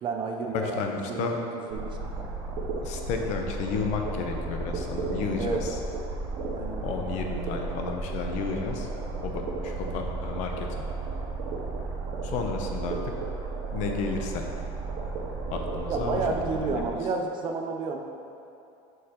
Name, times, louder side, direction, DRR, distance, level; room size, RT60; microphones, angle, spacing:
voice 1, 0.0-1.9 5.4-5.6 6.5-7.0 15.9-18.0, right 4 dB, 35° right, 2 dB, 0.5 m, -31 dB
voice 2, 0.5-1.4 2.8-5.8 6.8-8.9 9.2-10.9 12.2-13.1 13.7-14.5 15.5-16.9, left 5 dB, 55° left, 3 dB, 0.8 m, -32 dB
sound 1, 1.7-16.9, right 3 dB, 80° right, 0.8 m, -33 dB
7.7 x 5.4 x 3.0 m, 2.7 s
cardioid pair, 155°, 14 cm